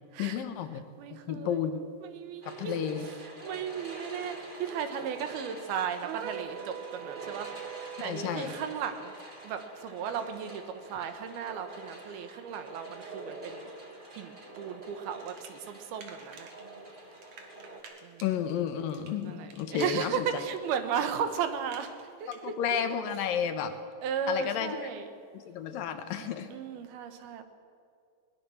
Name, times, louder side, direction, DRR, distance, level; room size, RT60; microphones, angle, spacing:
voice 1, 0.2-0.8 1.1-1.8 2.5-3.1 8.0-8.6 18.2-20.3 22.3-23.7 24.3-24.9 25.3-26.5, left 8 dB, 75° left, 8 dB, 2.7 m, -32 dB
voice 2, 1.0-1.5 2.0-2.8 3.4-7.5 8.0-9.1 9.4-13.7 14.2-16.5 18.0-18.2 19.2-22.0 22.2-22.5 24.0-25.1 26.2-27.4, right 7 dB, 85° right, 8 dB, 3.3 m, -35 dB
sound 1, 2.4-17.8, right 2 dB, 20° right, 1.5 m, -46 dB
sound 2, 6.0-8.2, right 11 dB, 70° right, 2.2 m, -42 dB
sound 3, 15.2-16.6 16.9-22.4, right 5 dB, 55° right, 3.2 m, -52 dB
21.5 x 19.5 x 7.2 m, 2.4 s
omnidirectional pair, 4.3 m